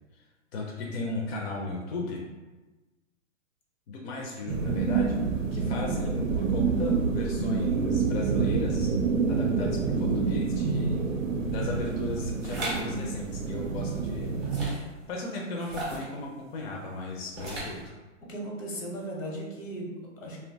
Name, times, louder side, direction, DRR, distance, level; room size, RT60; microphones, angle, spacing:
voice 1, 0.5-2.2 3.9-5.2 5.5-8.9 9.3-11.0 11.3-14.3 15.1-17.8, left 3 dB, 55° left, -1 dB, 0.5 m, -36 dB
sound 1, 4.5-14.7, right 5 dB, 90° right, 0.5 m, -27 dB
sound 2, 12.4-12.8 14.4-14.9 15.6-16.1 17.3-17.8, right 2 dB, 20° right, 0.4 m, -35 dB
voice 2, 18.3-20.4, right 1 dB, 85° left, -2 dB, 1.0 m, -37 dB
2.6 x 2.2 x 2.6 m, 1.2 s
hypercardioid pair, 145°, 38 cm